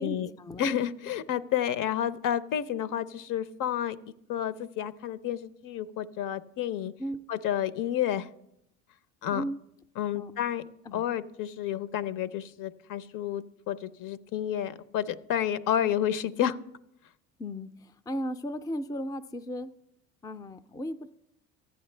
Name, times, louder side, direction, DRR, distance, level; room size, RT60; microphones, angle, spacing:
voice 1, 0.0-0.6 7.0-7.2 9.3-9.6 10.1-10.3 10.9-11.0 17.4-19.7 20.2-21.0, equal, 10° left, 12 dB, 0.4 m, -35 dB
voice 2, 0.6-4.0 4.3-6.9 7.3-8.3 9.2-9.4 10.0-10.6 10.9-16.6, left 10 dB, 60° left, 16 dB, 0.7 m, -30 dB
14.5 x 10.0 x 3.2 m, 0.79 s
supercardioid pair, 75°, 36 cm